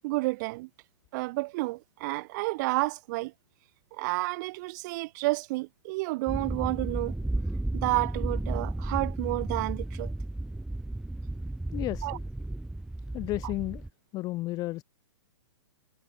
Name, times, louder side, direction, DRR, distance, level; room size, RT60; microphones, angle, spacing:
voice 1, 0.0-0.7 1.1-3.3 3.9-7.1 7.7-10.1 12.0-12.2, right 23 dB, 40° right, 1.8 m, -30 dB
sound 1, 6.3-13.9, right 1 dB, 5° right, 1.9 m, -33 dB
voice 2, 11.7-12.2 13.1-13.8 14.1-14.8, left 18 dB, 25° left, 1.3 m, -32 dB
hypercardioid pair, 150°, 15 cm